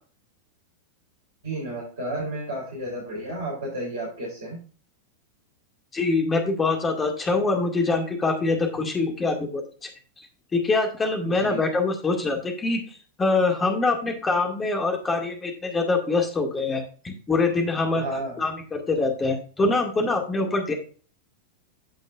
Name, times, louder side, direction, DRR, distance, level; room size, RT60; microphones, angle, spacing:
voice 1, 1.4-4.6 11.2-11.6 17.9-18.4, right 1 dB, 70° right, -5 dB, 4.0 m, -32 dB
voice 2, 5.9-9.6 10.5-12.8 13.2-18.0 18.4-20.7, left 3 dB, 15° left, 4 dB, 2.2 m, -24 dB
14.5 x 5.3 x 2.5 m, 0.39 s
figure-of-eight pair, 90°, 0 cm